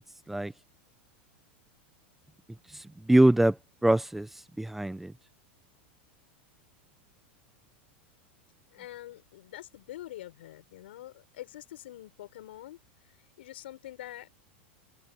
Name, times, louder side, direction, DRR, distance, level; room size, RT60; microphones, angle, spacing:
voice 1, 2.7-5.1, right 1 dB, 5° right, 1.2 m, -24 dB
voice 2, 8.7-12.8 13.4-14.3, left 14 dB, 80° left, 6.8 m, -45 dB
supercardioid pair, 130°, 6 cm